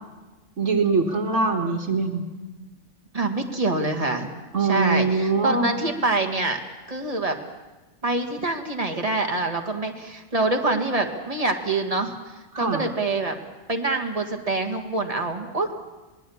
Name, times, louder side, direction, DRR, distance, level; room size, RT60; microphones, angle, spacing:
voice 1, 0.6-2.2 4.5-5.7 12.5-12.8, right 4 dB, 80° right, -2 dB, 2.0 m, -23 dB
voice 2, 3.1-4.3 4.6-6.6 6.9-7.3 8.0-12.1 12.6-13.3 13.7-15.7, right 2 dB, 30° right, 4 dB, 2.1 m, -25 dB
26.5 x 20.0 x 7.2 m, 1.2 s
omnidirectional pair, 1.2 m